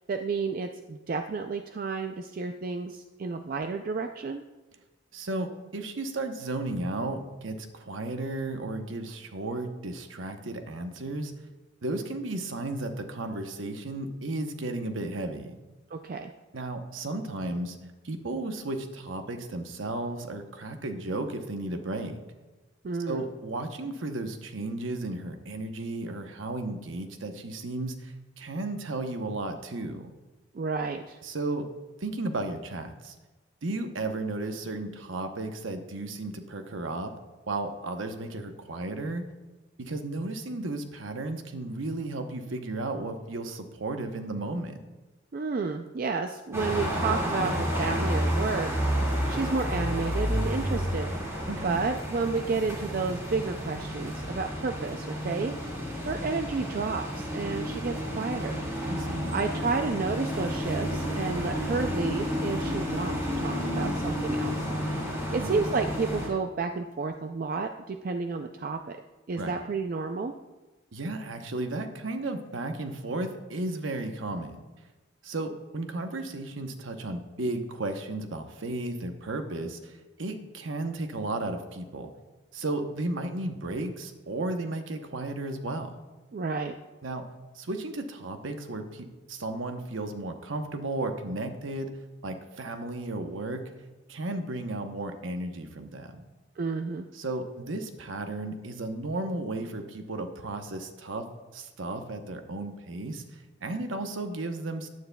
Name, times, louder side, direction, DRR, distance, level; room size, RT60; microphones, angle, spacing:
voice 1, 0.0-4.4 15.9-16.3 22.8-23.3 30.5-31.2 45.3-48.7 49.3-55.6 56.0-58.6 59.3-64.7 65.3-69.0 69.3-70.3 86.3-86.8 96.6-97.1, right 4 dB, 45° right, 6 dB, 0.4 m, -31 dB
voice 2, 5.1-11.3 11.8-15.6 16.5-17.8 18.0-22.2 23.1-30.1 31.2-31.7 32.0-33.1 33.6-37.1 37.5-39.2 39.8-44.8 51.5-51.8 58.8-59.3 65.3-65.7 69.4-69.6 70.9-74.6 75.2-82.1 82.5-85.9 87.0-87.3 87.6-91.9 92.2-93.6 94.1-96.2 97.1-101.3 101.5-104.9, right 2 dB, 85° right, 6 dB, 0.9 m, -34 dB
sound 1, 46.5-66.3, equal, 15° right, 2.0 m, -31 dB
14.5 x 9.5 x 2.3 m, 1.2 s
head